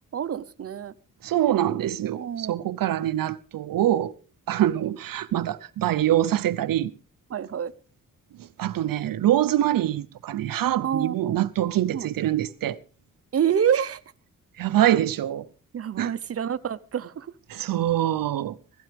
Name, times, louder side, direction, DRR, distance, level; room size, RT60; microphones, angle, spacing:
voice 1, 0.1-0.9 2.2-2.6 3.9-4.0 7.3-7.7 10.8-11.4 11.9-12.1 13.3-14.0 15.7-17.3, right 8 dB, 45° right, 0.8 m, -27 dB
voice 2, 1.2-4.1 4.5-6.9 8.6-12.8 14.6-15.5 16.0-16.1 17.5-18.6, right 12 dB, 80° right, 0.7 m, -24 dB
17.0 x 15.5 x 3.4 m
wide cardioid pair, 175°, 33 cm